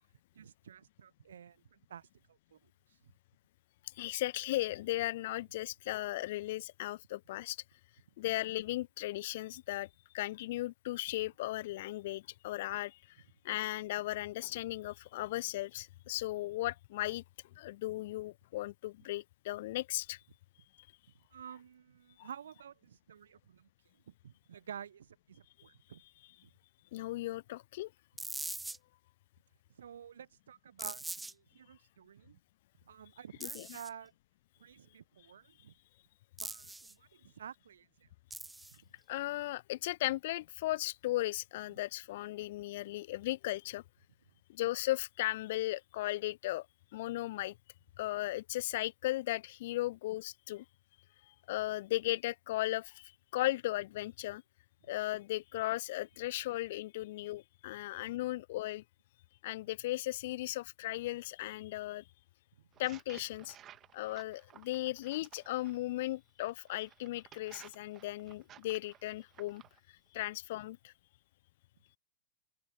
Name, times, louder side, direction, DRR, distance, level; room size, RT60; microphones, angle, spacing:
voice 1, 0.3-2.6 2.9-3.0 21.3-23.7 24.1-26.0 29.8-32.4 32.9-34.1 34.6-35.7 36.4-38.1 38.7-38.8, right 8 dB, 65° right, 0.8 m, -51 dB
voice 2, 4.0-7.6 8.2-9.9 10.1-13.2 13.4-17.2 17.6-20.2 22.2-22.3 26.9-27.9 33.4-33.8 39.1-43.8 44.5-46.7 46.9-47.6 48.0-50.6 51.3-54.4 54.9-58.8 59.4-62.0 62.8-63.6 63.9-69.6 70.1-70.9, left 17 dB, 55° left, 0.6 m, -36 dB
sound 1, 28.2-28.8 30.8-31.3 33.4-33.9 36.4-36.9 38.3-38.8, right 2 dB, 5° right, 0.3 m, -42 dB
sound 2, 62.7-65.8 66.5-69.8, right 11 dB, 30° right, 1.9 m, -57 dB
open air
figure-of-eight pair, 90°, 0 cm